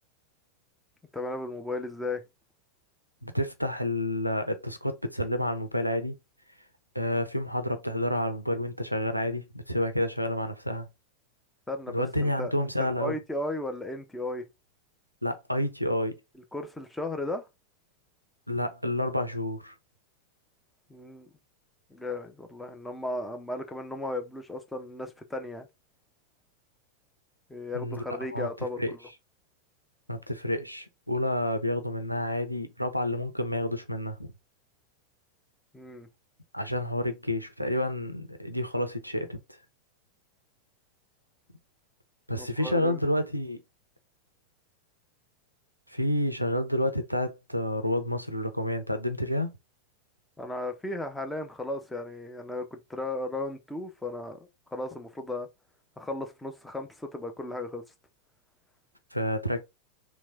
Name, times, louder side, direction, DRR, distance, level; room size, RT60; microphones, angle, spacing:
voice 1, 1.1-2.2 11.7-12.0 12.4-12.5 12.8-14.4 16.5-17.4 20.9-21.3 21.9-25.7 27.5-29.0 35.7-36.1 42.3-43.0 50.4-55.5 56.0-57.8, left 2 dB, 5° left, 0.8 m, -35 dB
voice 2, 3.2-6.2 6.9-10.9 11.9-13.2 15.2-16.2 18.5-19.7 27.7-28.5 28.8-28.9 30.1-34.3 36.5-39.4 42.3-43.6 45.9-49.5 59.1-59.6, left 1 dB, 90° right, 0.6 m, -29 dB
3.3 x 3.1 x 3.4 m
figure-of-eight pair, 90°, 0 cm